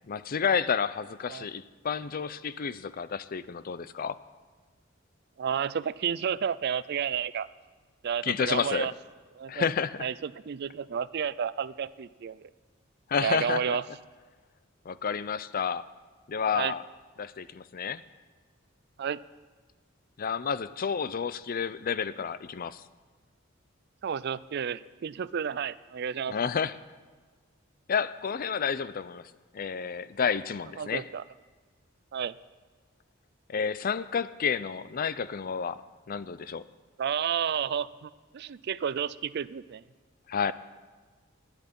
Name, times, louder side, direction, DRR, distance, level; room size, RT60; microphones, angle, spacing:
voice 1, 0.1-4.2 8.2-8.9 9.5-10.1 13.1-13.8 14.9-15.9 16.3-16.8 17.2-18.0 20.2-22.8 26.3-26.8 27.9-31.1 33.5-35.8 36.1-36.6 40.3-40.5, left 6 dB, 45° left, 15 dB, 0.5 m, -30 dB
voice 2, 5.4-7.5 8.0-8.9 9.4-9.7 10.0-12.5 13.2-13.8 16.5-16.7 19.0-19.2 24.0-26.3 30.8-31.2 32.1-32.3 37.0-39.8, right 7 dB, 55° right, 18 dB, 0.4 m, -31 dB
20.0 x 9.1 x 5.3 m, 1.4 s
head